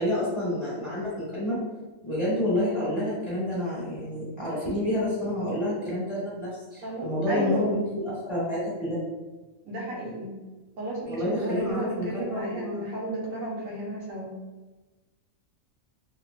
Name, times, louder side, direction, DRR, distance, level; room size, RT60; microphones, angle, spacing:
voice 1, 0.0-1.6 2.0-9.0 11.1-12.8, left 1 dB, 20° left, -10 dB, 1.3 m, -29 dB
voice 2, 6.8-7.7 9.6-10.4 10.8-14.3, right 1 dB, 75° right, -3 dB, 1.1 m, -33 dB
3.1 x 2.8 x 2.4 m, 1.2 s
omnidirectional pair, 1.5 m